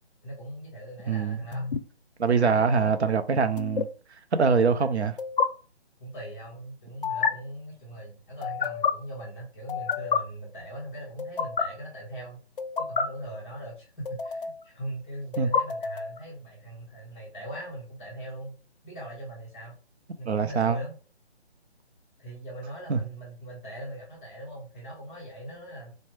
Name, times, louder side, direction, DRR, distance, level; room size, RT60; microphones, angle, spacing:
voice 1, 0.2-1.7 2.3-2.9 6.0-12.4 12.9-18.6 18.8-19.8 20.2-20.9 22.2-25.9, right 1 dB, 5° left, 0.6 m, -40 dB
voice 2, 1.1-1.4 2.2-3.9 4.3-5.1 15.4-15.5 20.3-20.8 22.9-23.0, right 5 dB, 75° right, 0.7 m, -23 dB
sound 1, 1.5-1.8 3.6-3.8 5.2-5.5 7.0-7.3 8.4-8.9 9.7-10.2 11.2-11.6 12.6-13.0 14.0-14.6 15.3-16.2, left 6 dB, 55° left, 0.5 m, -28 dB
4.3 x 2.1 x 3.2 m
hypercardioid pair, 165°, 33 cm